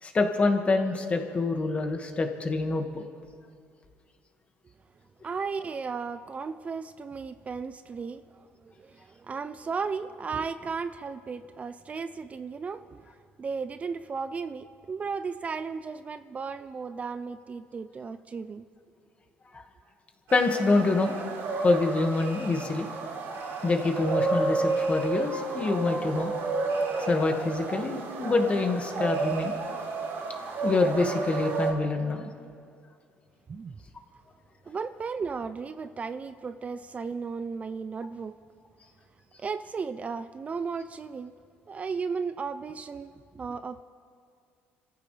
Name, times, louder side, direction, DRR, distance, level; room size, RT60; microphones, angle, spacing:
voice 1, 0.0-3.0 19.5-19.6 20.3-21.2 21.6-22.9 23.6-26.3 27.0-29.6 30.6-32.3, left 3 dB, 30° left, 4 dB, 1.9 m, -26 dB
voice 2, 5.2-13.1 13.4-18.6 33.5-33.8 34.7-38.4 39.4-41.3 41.7-43.8, right 5 dB, 30° right, 11 dB, 0.5 m, -35 dB
sound 1, 20.3-31.7, right 3 dB, 75° right, 4.0 m, -31 dB
28.5 x 14.5 x 3.4 m, 2.2 s
cardioid pair, 100°, 4 cm